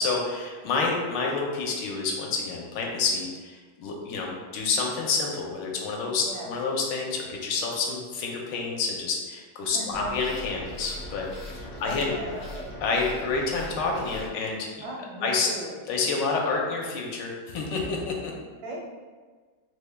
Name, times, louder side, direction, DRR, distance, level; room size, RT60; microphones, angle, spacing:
voice 1, 0.0-12.1 12.8-14.7 15.2-15.5 15.9-18.3, left 4 dB, 80° left, -1 dB, 1.2 m, -28 dB
voice 2, 6.2-6.5 9.7-10.1 11.8-12.7 14.8-15.8 18.6-18.9, right 1 dB, 80° right, -2 dB, 1.3 m, -37 dB
sound 1, 9.9-14.3, left 1 dB, 55° left, 0.7 m, -40 dB
3.4 x 2.1 x 3.3 m, 1.4 s
omnidirectional pair, 1.9 m